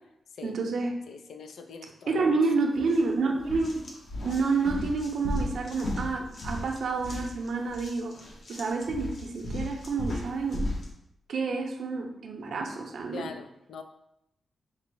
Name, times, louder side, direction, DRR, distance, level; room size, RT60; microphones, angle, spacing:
voice 1, 0.4-1.0 2.1-3.8 4.2-8.1 8.5-10.7 11.3-13.3, right 4 dB, 70° right, 2 dB, 0.6 m, -29 dB
voice 2, 1.1-2.3 13.1-13.8, left 5 dB, 85° left, 6 dB, 0.4 m, -42 dB
sound 1, 2.8-3.0 3.4-10.9, left 1 dB, 55° left, 0.8 m, -36 dB
4.5 x 2.0 x 4.5 m, 0.82 s
wide cardioid pair, 115°, 0 cm